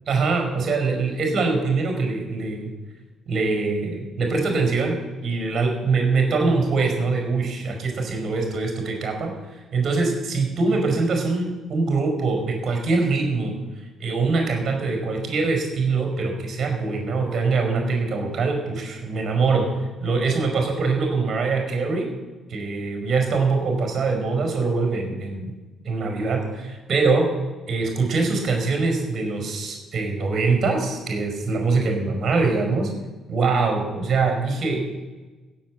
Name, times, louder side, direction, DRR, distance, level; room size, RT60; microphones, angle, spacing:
voice 1, 0.1-2.7 3.3-13.5 14.0-19.7 20.0-22.1 22.5-25.6 25.8-27.3 27.7-32.9 33.3-35.0, right 4 dB, 45° right, 3 dB, 5.2 m, -23 dB
16.0 x 7.5 x 7.9 m, 1.2 s
figure-of-eight pair, 45°, 0 cm